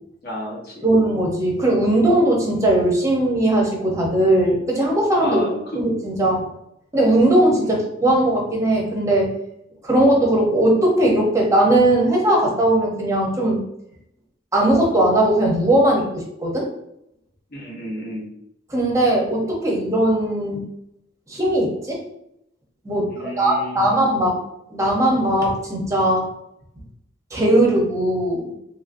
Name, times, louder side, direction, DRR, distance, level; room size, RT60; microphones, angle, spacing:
voice 1, 0.2-0.9 5.2-5.6 7.6-7.9 17.5-18.3 23.1-24.1, equal, 55° left, -3 dB, 1.0 m, -32 dB
voice 2, 0.8-5.4 5.8-6.5 6.9-9.3 9.8-13.6 14.5-16.7 18.7-20.6 21.3-22.0 22.8-24.4 24.7-26.3 27.3-28.5, right 1 dB, 15° right, -2 dB, 0.7 m, -19 dB
3.0 x 2.7 x 2.5 m, 0.77 s
head